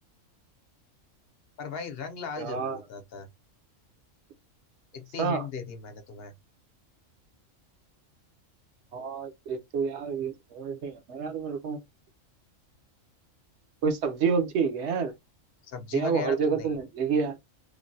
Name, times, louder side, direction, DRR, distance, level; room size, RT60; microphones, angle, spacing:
voice 1, 1.6-3.3 4.9-6.3 15.6-16.8, left 6 dB, 55° left, 0.8 m, -37 dB
voice 2, 2.4-2.8 5.2-5.4 8.9-11.8 13.8-15.1 15.9-17.4, right 5 dB, 60° right, 1.0 m, -28 dB
3.2 x 2.2 x 2.6 m
omnidirectional pair, 1.4 m